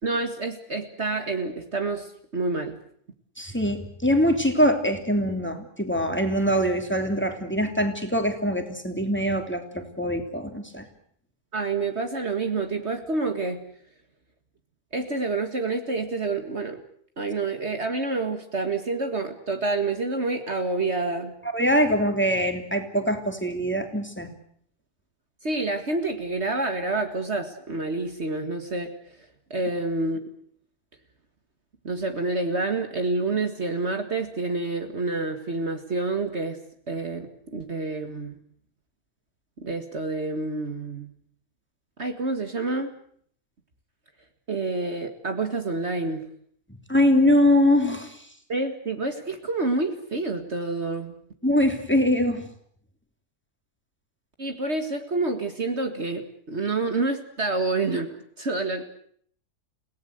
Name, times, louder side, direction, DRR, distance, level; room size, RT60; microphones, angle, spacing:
voice 1, 0.0-2.8 11.5-13.6 14.9-16.8 17.2-21.4 25.4-29.2 29.5-30.3 31.8-36.6 36.9-38.4 39.6-41.1 42.0-42.9 44.5-46.3 48.5-51.2 54.4-58.8, right 3 dB, 45° right, 6 dB, 2.0 m, -28 dB
voice 2, 3.4-10.8 21.4-24.3 46.9-48.3 51.4-52.5, equal, 5° left, 5 dB, 2.9 m, -23 dB
30.0 x 18.0 x 8.0 m, 0.63 s
omnidirectional pair, 1.6 m